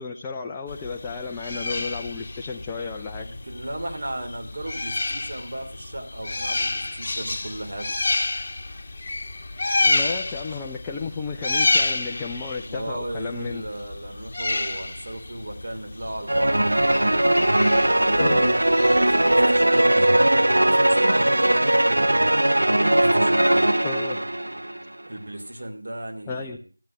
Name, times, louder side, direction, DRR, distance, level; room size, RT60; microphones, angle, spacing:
voice 1, 0.0-3.3 9.8-13.7 18.0-18.6 23.8-24.2 26.3-26.6, left 4 dB, 10° left, 0 dB, 0.5 m, -33 dB
sound 1, 0.7-19.7, left 2 dB, 25° left, 1.8 m, -30 dB
voice 2, 3.2-7.9 12.6-16.7 18.8-22.1 22.8-23.7 25.1-26.7, right 1 dB, 50° right, 3 dB, 3.0 m, -36 dB
sound 2, 16.3-24.8, right 1 dB, 70° right, 0.6 m, -19 dB
15.0 x 7.8 x 6.4 m, 0.39 s
figure-of-eight pair, 170°, 0 cm